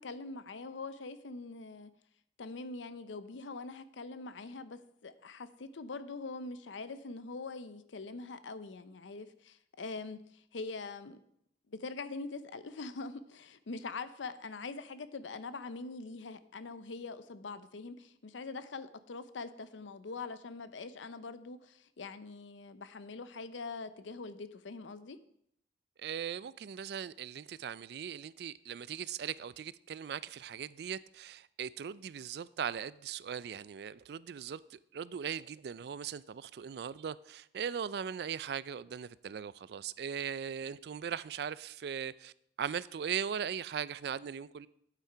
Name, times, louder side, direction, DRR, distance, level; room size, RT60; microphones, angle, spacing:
voice 1, 0.0-1.9 2.4-11.2 11.7-25.2, left 3 dB, 90° left, 0.6 m, -43 dB
voice 2, 26.0-42.3 42.6-44.7, right 8 dB, 60° right, 0.3 m, -39 dB
8.6 x 8.3 x 4.6 m
head